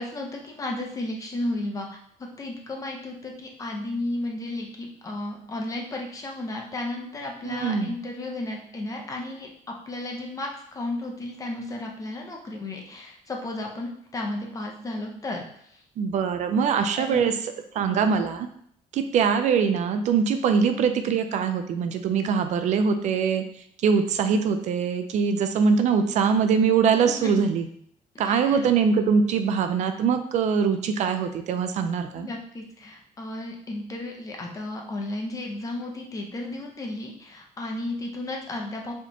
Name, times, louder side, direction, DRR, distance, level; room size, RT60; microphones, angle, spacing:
voice 1, 0.0-1.9 2.2-15.8 17.0-17.3 26.9-27.5 28.1-28.6 32.1-38.9, left 2 dB, 25° left, 1 dB, 0.8 m, -33 dB
voice 2, 7.4-7.9 16.0-17.3 17.7-18.5 18.9-23.4 23.8-27.7 28.2-32.3, right 6 dB, 60° right, 8 dB, 0.4 m, -23 dB
4.7 x 3.5 x 2.9 m, 0.67 s
cardioid pair, 150°, 14 cm